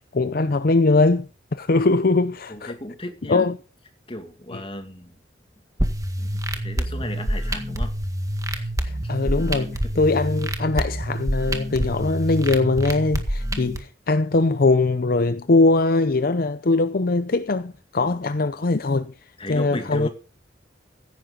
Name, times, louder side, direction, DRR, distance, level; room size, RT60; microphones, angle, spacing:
voice 1, 0.0-2.7 3.3-3.5 8.8-19.1 19.5-20.1, left 3 dB, 50° left, 0.6 m, -21 dB
voice 2, 2.5-3.5 4.1-5.1 6.2-7.9 8.5-9.9 18.0-18.2 19.4-20.1, left 1 dB, 30° left, 2.4 m, -36 dB
sound 1, 5.8-13.8, right 1 dB, 20° right, 1.8 m, -27 dB
15.5 x 10.5 x 3.9 m
head